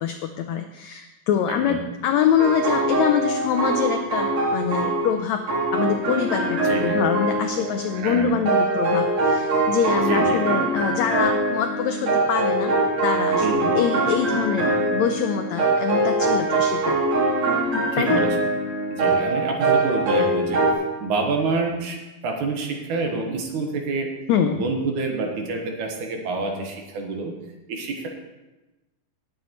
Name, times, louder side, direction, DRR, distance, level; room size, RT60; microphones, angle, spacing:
voice 1, 0.0-5.4 5.7-12.7 13.0-13.5 13.7-14.7 14.9-17.0 17.7-18.2 24.3-24.6, left 8 dB, 90° left, 6 dB, 1.5 m, -24 dB
voice 2, 1.5-1.9 6.6-7.0 7.9-8.4 10.0-10.6 13.4-13.8 17.9-18.3 18.9-20.7 21.0-24.1 24.5-27.4 27.7-28.1, right 3 dB, 70° right, 2 dB, 2.6 m, -28 dB
sound 1, 2.4-5.2 5.5-20.7, right 2 dB, 55° right, 3.2 m, -23 dB
19.5 x 7.7 x 3.1 m, 1.1 s
omnidirectional pair, 3.9 m